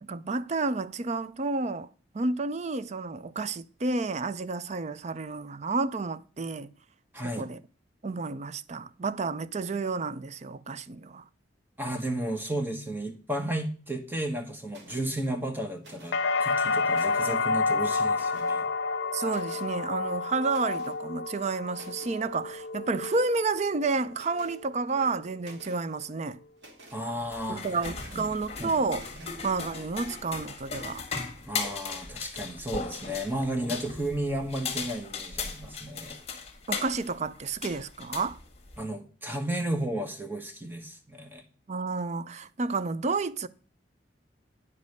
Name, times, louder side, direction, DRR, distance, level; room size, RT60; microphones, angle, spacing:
voice 1, 0.0-1.9 2.1-6.7 7.2-7.6 8.0-11.2 19.1-26.4 27.5-29.0 29.4-31.0 36.7-38.4 41.7-43.5, right 3 dB, 40° right, 0.5 m, -30 dB
voice 2, 7.1-7.5 11.8-18.7 26.9-27.8 28.1-28.3 28.6-28.9 29.2-29.3 31.5-36.2 38.8-41.4, right 1 dB, 10° right, 1.3 m, -33 dB
sound 1, 14.7-15.1 15.8-16.3 16.7-17.4 18.1-18.6 19.3-19.7 20.5-21.0 21.4-21.5 21.7-22.2 23.0-23.3 24.1-24.6 25.0-25.8 26.6-27.0 27.8-28.2 28.9-29.4, right 2 dB, 80° right, 2.2 m, -52 dB
sound 2, 16.1-24.0 24.4-25.1, left 4 dB, 80° left, 0.6 m, -30 dB
sound 3, 27.2-38.8, left 5 dB, 35° left, 1.6 m, -38 dB
9.5 x 5.2 x 6.5 m
head